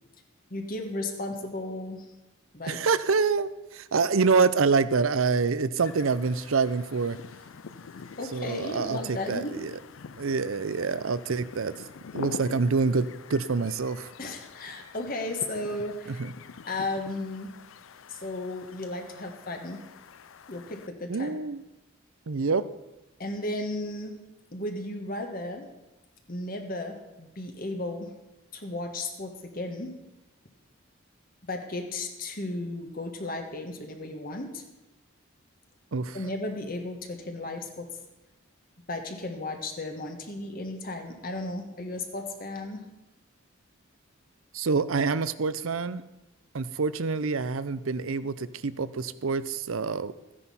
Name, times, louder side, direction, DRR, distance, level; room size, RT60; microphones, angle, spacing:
voice 1, 0.5-2.1 2.5-2.9 8.2-9.6 14.2-16.2 16.6-17.5 18.1-19.8 20.5-21.4 23.2-24.2 24.5-25.7 26.3-28.1 28.5-30.0 31.5-34.6 36.1-37.9 38.9-42.9, left 2 dB, 40° left, 4 dB, 1.4 m, -34 dB
voice 2, 2.7-7.2 8.3-9.7 10.2-11.7 12.1-14.1 16.2-16.3 21.1-21.6 22.3-22.6 35.9-36.2 44.5-46.0 46.5-50.1, right 4 dB, 75° right, 15 dB, 0.6 m, -26 dB
sound 1, 5.8-20.9, left 5 dB, 70° left, 0.5 m, -45 dB
14.0 x 9.9 x 5.6 m, 0.99 s
head